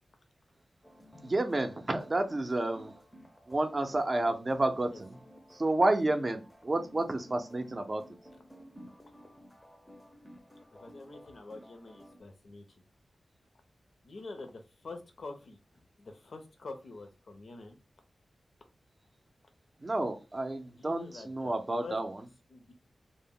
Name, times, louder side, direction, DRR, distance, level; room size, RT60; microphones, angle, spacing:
sound 1, 0.8-12.2, equal, 10° left, 0.5 m, -54 dB
voice 1, 1.2-2.9 3.5-5.2 5.5-8.0 19.8-22.2, right 2 dB, 35° right, 6 dB, 0.5 m, -30 dB
voice 2, 10.8-12.8 14.0-15.6 16.0-17.8 20.6-21.5 21.8-22.0 22.5-22.7, left 3 dB, 65° left, 6 dB, 0.6 m, -46 dB
2.0 x 2.0 x 3.6 m, 0.28 s
wide cardioid pair, 90°, 0 cm